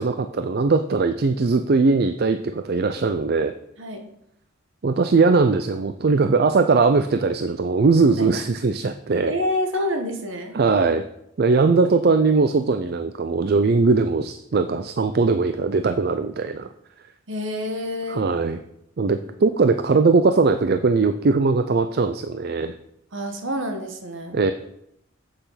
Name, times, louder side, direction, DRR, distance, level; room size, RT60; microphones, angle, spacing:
voice 1, 0.0-3.5 4.8-9.3 10.5-11.0 11.4-16.7 18.1-18.6 19.0-22.7 24.3-24.5, right 4 dB, 45° right, 9 dB, 0.4 m, -20 dB
voice 2, 9.3-10.6 17.3-18.3 23.1-24.4, left 1 dB, 65° right, 5 dB, 1.4 m, -27 dB
8.0 x 6.8 x 5.7 m, 0.77 s
head